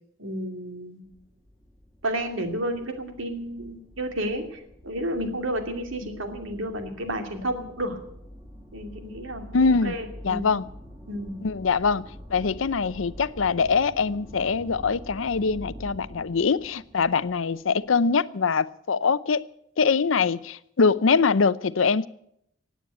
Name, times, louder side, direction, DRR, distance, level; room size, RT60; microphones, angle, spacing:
voice 1, 0.2-1.0 2.0-8.0 8.7-10.4 11.1-11.3, right 1 dB, 90° right, 5 dB, 2.6 m, -31 dB
sound 1, 1.0-18.1, equal, 5° right, 2.6 m, -45 dB
voice 2, 9.5-9.9 10.2-10.6 11.4-12.0 12.3-19.4 19.8-22.1, left 5 dB, 85° left, 17 dB, 0.6 m, -23 dB
16.5 x 9.3 x 9.0 m, 0.75 s
head